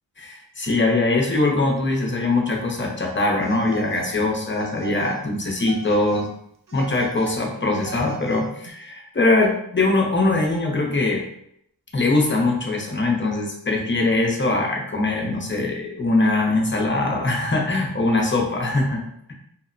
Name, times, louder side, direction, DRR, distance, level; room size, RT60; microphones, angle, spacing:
voice 1, 0.2-6.3 6.7-11.2 11.9-19.0, left 2 dB, 30° left, 0 dB, 0.6 m, -22 dB
Telephone, 3.4-4.1 4.5-5.2 5.6-6.3 6.7-8.7, right 5 dB, 50° right, 0.5 m, -38 dB
2.9 x 2.0 x 2.5 m, 0.71 s
wide cardioid pair, 45°, 41 cm